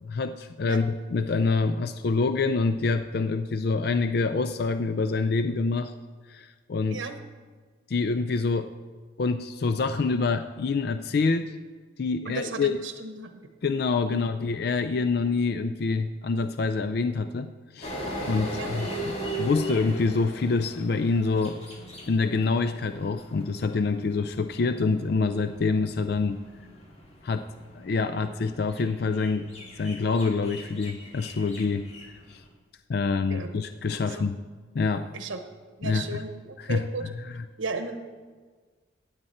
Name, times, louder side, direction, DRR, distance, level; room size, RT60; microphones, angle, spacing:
voice 1, 0.0-5.9 6.3-7.0 7.9-8.7 9.2-11.6 12.0-12.8 13.6-18.0 18.3-18.9 19.4-21.6 22.1-26.4 27.2-27.5 27.7-29.5 29.8-31.9 32.3-32.4 32.9-34.4 34.7-35.1 35.8-36.2 36.6-36.9, left 4 dB, 55° left, 10 dB, 0.4 m, -26 dB
voice 2, 12.2-13.3 14.1-14.3 18.5-18.7 33.3-33.5 34.0-34.2 35.1-35.4 35.8-37.1 37.6-38.0, right 3 dB, 85° right, 7 dB, 1.0 m, -35 dB
sound 1, 17.8-32.4, right 1 dB, 30° left, 2.1 m, -39 dB
15.5 x 8.8 x 4.3 m, 1.5 s
head